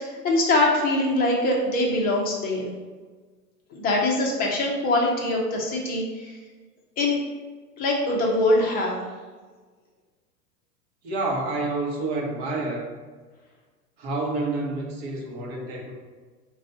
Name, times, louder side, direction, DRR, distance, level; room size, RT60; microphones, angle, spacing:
voice 1, 0.0-2.7 3.7-6.4 7.0-7.2 7.8-9.0, left 2 dB, 20° left, -1 dB, 0.7 m, -23 dB
voice 2, 11.0-12.9 14.0-15.9, right 2 dB, 40° right, -1 dB, 1.0 m, -28 dB
4.6 x 2.5 x 4.2 m, 1.4 s
figure-of-eight pair, 100°, 48 cm